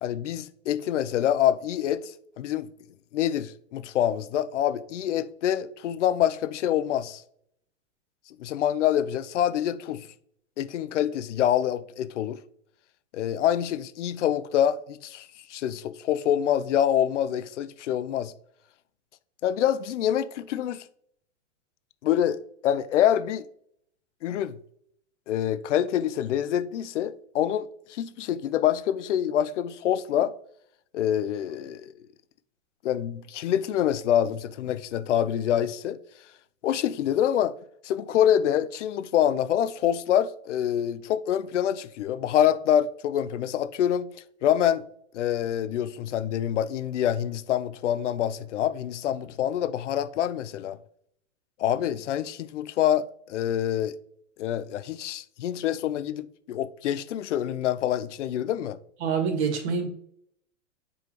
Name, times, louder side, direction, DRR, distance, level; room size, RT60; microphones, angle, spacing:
voice 1, 0.0-2.7 3.1-7.2 8.4-10.1 10.6-12.4 13.1-18.3 19.4-20.8 22.0-23.4 24.2-24.6 25.3-30.3 30.9-31.9 32.8-36.0 36.6-37.5 37.8-44.1 44.4-44.8 45.1-50.8 51.6-54.0 54.4-58.8, left 10 dB, 75° left, 0.7 m, -26 dB
voice 2, 59.0-59.9, right 6 dB, 65° right, 1.9 m, -26 dB
6.9 x 5.0 x 3.1 m
hypercardioid pair, 125°, 36 cm